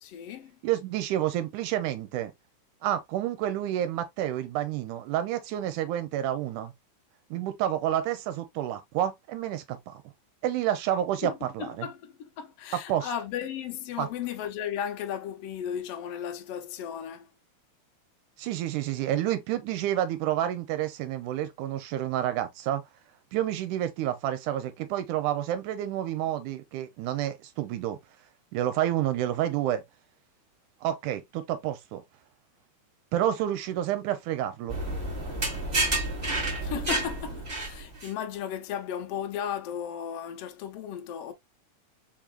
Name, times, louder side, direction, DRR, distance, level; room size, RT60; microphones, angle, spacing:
voice 1, 0.0-0.5 11.2-11.3 11.6-17.3 36.6-41.3, left 9 dB, 80° left, 1.4 m, -35 dB
voice 2, 0.6-2.3 2.8-6.7 7.3-10.0 10.4-11.9 12.7-13.1 14.0-14.1 18.4-22.8 23.3-28.0 28.5-29.8 30.8-32.0 33.1-34.8, right 12 dB, 80° right, 2.1 m, -29 dB
sound 1, 34.7-38.1, right 2 dB, 25° right, 0.9 m, -30 dB
4.5 x 3.7 x 2.3 m
omnidirectional pair, 3.7 m